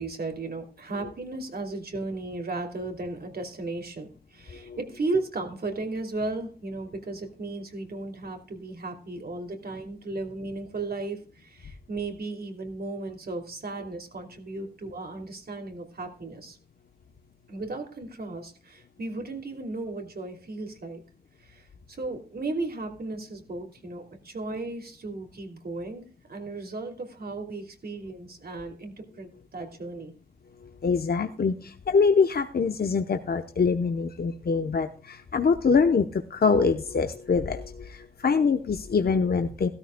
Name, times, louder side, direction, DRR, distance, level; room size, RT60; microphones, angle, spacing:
voice 1, 0.0-16.6 17.5-21.0 21.4-30.1, right 2 dB, 80° right, 4 dB, 2.8 m, -35 dB
voice 2, 30.6-39.7, left 5 dB, 80° left, 6 dB, 0.9 m, -24 dB
16.5 x 13.0 x 2.2 m, 0.38 s
wide cardioid pair, 100°, 16 cm